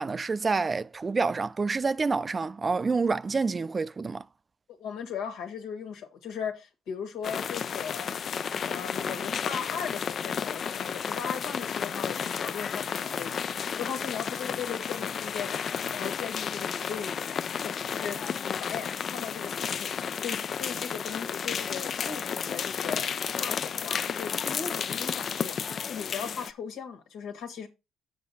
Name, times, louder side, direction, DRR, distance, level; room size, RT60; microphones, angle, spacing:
voice 1, 0.0-4.2, right 4 dB, 30° right, 0.4 m, -28 dB
voice 2, 4.7-8.2 8.6-17.4 17.6-23.1 23.4-27.7, left 7 dB, 85° left, 1.8 m, -38 dB
sound 1, 7.2-26.5, left 7 dB, 55° left, 0.4 m, -32 dB
7.3 x 7.0 x 4.1 m
cardioid pair, 90°, 0 cm